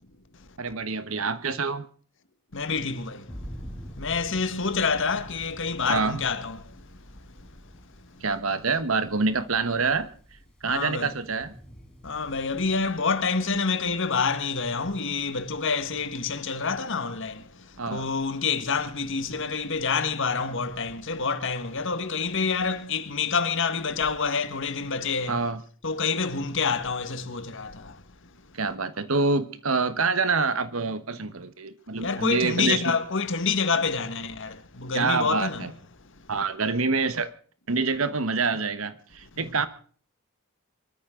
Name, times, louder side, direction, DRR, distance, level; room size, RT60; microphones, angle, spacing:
voice 1, 0.6-1.9 5.9-6.2 8.2-10.1 10.6-11.5 17.8-18.0 25.3-25.6 28.5-32.9 34.9-35.7 36.3-37.3 37.7-39.7, right 4 dB, 70° right, 1.3 m, -26 dB
voice 2, 2.5-3.4 4.0-7.0 7.4-7.5 8.1-8.2 10.7-11.1 12.0-25.4 25.8-28.0 32.0-35.7 39.3-39.5, left 5 dB, 60° left, 1.7 m, -28 dB
Thunder, 3.3-15.2, equal, 5° left, 5.8 m, -47 dB
24.5 x 14.0 x 3.8 m
head